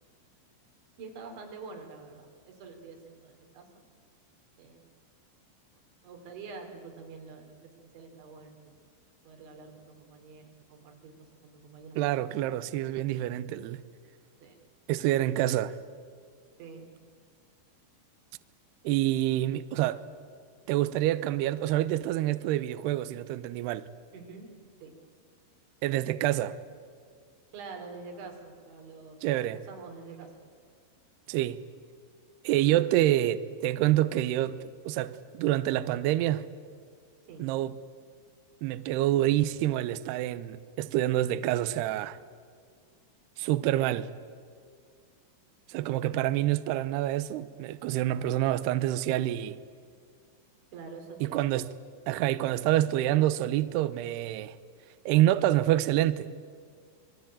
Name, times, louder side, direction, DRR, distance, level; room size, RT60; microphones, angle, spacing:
voice 1, 1.0-3.9 4.6-4.9 6.0-8.7 9.3-11.1 11.4-12.2 14.4-14.6 16.6-16.9 24.1-24.5 24.8-24.9 27.5-29.2 29.5-30.3 37.3-37.5 50.7-51.6, right 4 dB, 65° right, 5.7 m, -46 dB
voice 2, 12.0-13.8 14.9-15.8 18.8-20.0 20.7-23.9 25.8-26.6 29.2-29.6 31.3-31.6 32.4-36.5 37.4-37.8 38.6-42.2 43.4-44.1 45.7-49.6 51.2-51.7 52.1-54.6 55.1-56.3, right 14 dB, 90° right, 2.3 m, -27 dB
27.0 x 21.5 x 8.9 m
omnidirectional pair, 5.8 m